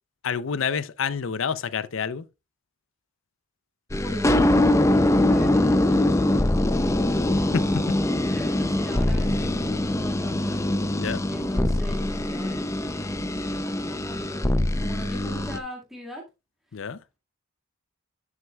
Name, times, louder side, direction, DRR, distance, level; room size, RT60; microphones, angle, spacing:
voice 1, 0.2-2.2 11.0-11.2 16.7-17.0, left 6 dB, 65° left, 0.5 m, -28 dB
sound 1, 3.9-15.6, left 1 dB, 15° left, 0.4 m, -23 dB
voice 2, 3.9-6.8 7.2-16.2 16.7-16.8, right 1 dB, ahead, 1.9 m, -41 dB
9.4 x 7.4 x 2.3 m
head